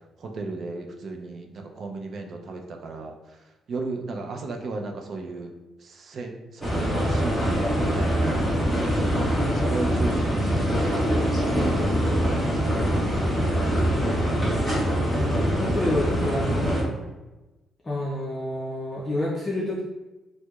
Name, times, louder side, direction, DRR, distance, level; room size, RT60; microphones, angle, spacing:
voice 1, 0.2-9.0 9.5-13.7, right 3 dB, 50° right, 3 dB, 0.4 m, -36 dB
sound 1, 6.6-16.8, equal, ahead, 1.0 m, -24 dB
voice 2, 15.4-16.7 17.8-19.8, left 1 dB, 25° left, -5 dB, 0.5 m, -29 dB
4.4 x 2.0 x 2.3 m, 1.1 s
cardioid pair, 120°, 0 cm